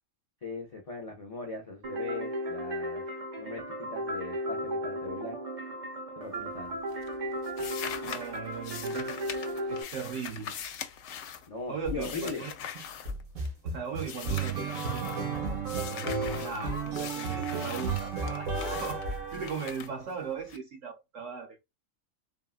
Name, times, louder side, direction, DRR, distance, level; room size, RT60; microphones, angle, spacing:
voice 1, 0.4-3.0 3.4-5.4 6.2-6.8 11.5-12.4, left 3 dB, 50° left, 0.4 m, -39 dB
sound 1, 1.8-9.8, equal, 35° right, 0.8 m, -35 dB
sound 2, 6.2-6.6 6.9-13.7 14.0-15.2 15.6-20.6, left 8 dB, 70° left, 0.8 m, -42 dB
voice 2, 8.0-9.3 9.7-10.6 11.7-12.5 13.6-15.2 15.9-21.6, right 6 dB, 70° right, 1.3 m, -38 dB
sound 3, 11.8-12.2 12.7-19.9, right 4 dB, 90° right, 1.6 m, -33 dB
3.7 x 2.3 x 2.4 m
omnidirectional pair, 1.4 m